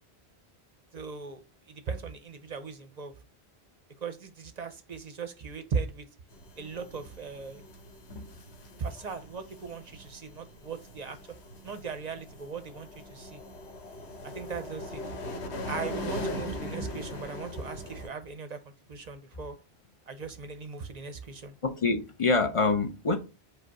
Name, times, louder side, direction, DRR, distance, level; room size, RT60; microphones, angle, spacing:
voice 1, 0.9-3.1 4.0-6.1 6.6-7.6 8.8-11.2 11.6-13.4 14.2-15.0 15.7-18.6 18.9-19.6 20.1-21.5, right 5 dB, 50° right, 0.6 m, -38 dB
sound 1, 6.3-18.1, left 1 dB, 90° left, 1.1 m, -40 dB
voice 2, 21.6-23.2, left 3 dB, 40° left, 0.5 m, -25 dB
5.0 x 2.2 x 4.6 m
omnidirectional pair, 1.1 m